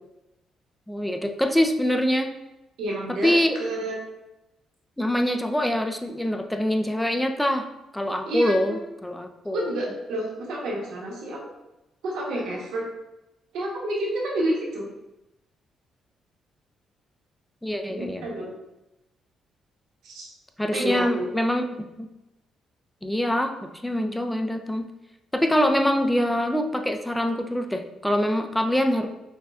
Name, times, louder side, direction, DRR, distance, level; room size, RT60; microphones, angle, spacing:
voice 1, 0.9-2.3 3.2-3.6 5.0-7.7 7.9-9.7 17.6-18.3 20.6-21.7 22.0-22.1 23.0-23.5 23.8-24.9 25.3-29.1, equal, 5° left, 5 dB, 0.3 m, -24 dB
voice 2, 2.8-4.0 8.2-8.8 9.5-11.4 12.0-12.8 13.5-14.9 17.9-18.5 20.0-20.3 20.7-21.3, right 1 dB, 80° right, -3 dB, 1.0 m, -29 dB
5.9 x 2.2 x 2.4 m, 0.95 s
cardioid pair, 90°, 0 cm